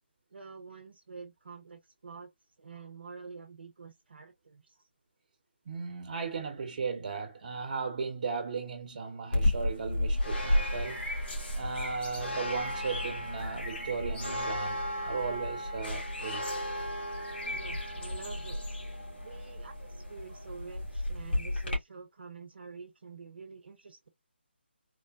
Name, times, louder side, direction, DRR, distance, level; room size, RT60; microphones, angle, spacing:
voice 1, 0.3-2.3 2.6-4.7 17.4-18.8 19.2-24.1, right 5 dB, 65° right, 0.9 m, -47 dB
voice 2, 5.6-11.1 11.5-16.5, right 5 dB, 45° right, 1.2 m, -36 dB
sound 1, 9.3-21.8, left 1 dB, 65° left, 1.9 m, -33 dB
3.8 x 2.1 x 2.5 m
figure-of-eight pair, 155°, 6 cm